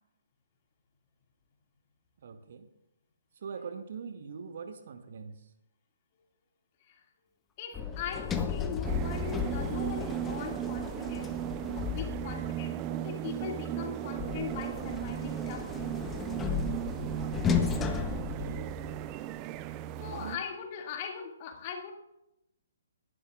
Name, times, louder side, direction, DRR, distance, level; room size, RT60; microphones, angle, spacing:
voice 1, 2.2-2.7 3.4-5.4 18.0-18.7 19.9-20.4, right 5 dB, 50° right, 8 dB, 1.2 m, -43 dB
voice 2, 7.6-11.3 11.6-16.2 20.0-21.9, left 7 dB, 35° left, 2 dB, 2.4 m, -40 dB
Sliding door, 7.7-12.6 14.2-19.1, left 7 dB, 15° left, 0.9 m, -34 dB
sound 1, 8.8-20.4, right 12 dB, 25° right, 0.5 m, -36 dB
19.0 x 11.5 x 2.5 m, 0.86 s
figure-of-eight pair, 130°, 0 cm